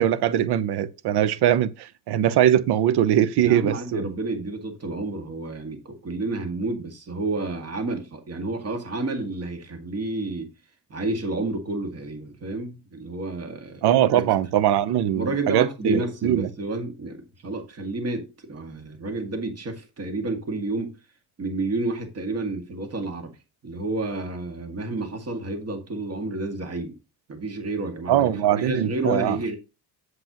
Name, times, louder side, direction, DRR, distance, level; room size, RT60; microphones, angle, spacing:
voice 1, 0.0-4.0 13.8-16.5 28.1-29.4, right 11 dB, 75° right, 0.8 m, -21 dB
voice 2, 3.4-10.5 10.9-14.3 15.1-21.0 21.4-23.3 23.6-27.0 27.3-29.6, right 2 dB, 40° right, 2.0 m, -30 dB
7.7 x 7.7 x 3.0 m
cardioid pair, 115°, 40 cm